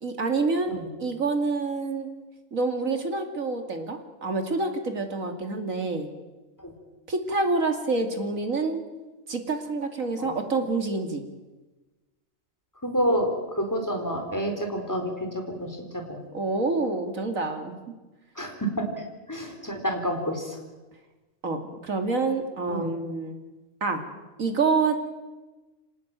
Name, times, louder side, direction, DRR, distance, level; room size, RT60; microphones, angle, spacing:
voice 1, 0.0-2.1 2.5-6.1 7.1-8.8 9.3-11.2 16.3-17.8 21.4-23.4 23.8-24.0 24.4-24.9, right 3 dB, 70° right, 6 dB, 2.9 m, -27 dB
voice 2, 12.8-16.2 18.4-18.8 19.3-20.6 22.7-22.9, equal, 10° left, 3 dB, 4.4 m, -29 dB
26.5 x 18.5 x 9.1 m, 1.2 s
omnidirectional pair, 1.5 m